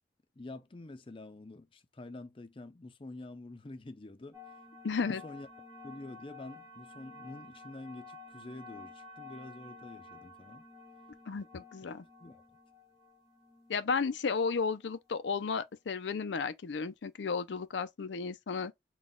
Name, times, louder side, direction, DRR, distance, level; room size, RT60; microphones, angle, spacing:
voice 1, 0.4-4.4 5.0-5.5 5.8-10.6 11.8-11.9 12.2-12.4, left 2 dB, 30° left, 0.5 m, -47 dB
sound 1, 4.3-15.1, left 2 dB, 20° right, 1.4 m, -52 dB
voice 2, 4.8-5.2 11.3-12.0 13.7-18.7, left 5 dB, 80° left, 0.5 m, -33 dB
4.0 x 2.3 x 3.6 m
head